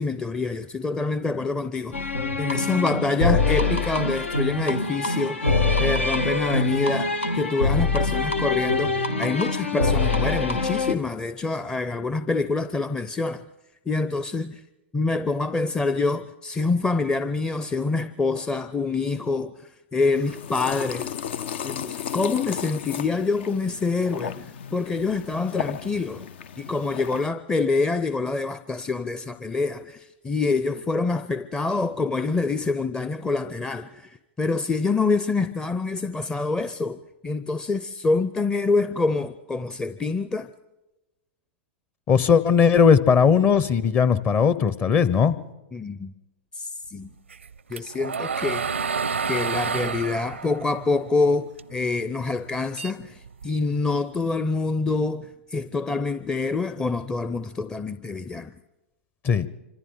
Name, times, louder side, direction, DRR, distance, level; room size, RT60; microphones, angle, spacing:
voice 1, 0.0-2.0 2.4-13.4 13.9-14.6 14.9-21.1 21.6-26.3 26.6-40.5 45.7-46.1 46.6-47.1 47.7-48.9 49.3-58.5, left 3 dB, 10° left, 11 dB, 0.6 m, -26 dB
sound 1, 1.9-11.0, left 3 dB, 85° left, 1.6 m, -24 dB
sound 2, 20.2-27.3, left 9 dB, 65° left, 0.7 m, -34 dB
voice 2, 42.1-45.3 59.2-59.5, left 6 dB, 30° left, 16 dB, 1.0 m, -18 dB
sound 3, 47.3-51.8 52.2-53.8, right 5 dB, 85° right, 0.6 m, -29 dB
26.5 x 25.5 x 3.9 m, 1.1 s
hypercardioid pair, 105°, 7 cm